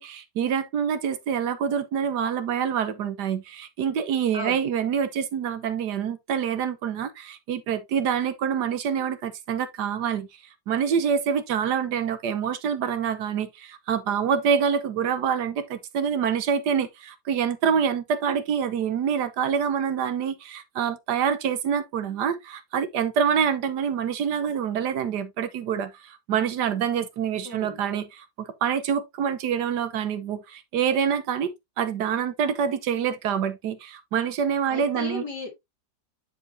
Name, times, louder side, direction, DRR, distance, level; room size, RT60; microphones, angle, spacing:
voice 1, 0.0-10.3 10.7-35.2, right 7 dB, 80° right, 1.5 m, -26 dB
voice 2, 4.3-4.7 27.4-27.8 34.7-35.5, left 3 dB, 80° left, 3.2 m, -34 dB
9.6 x 4.8 x 2.6 m
omnidirectional pair, 1.8 m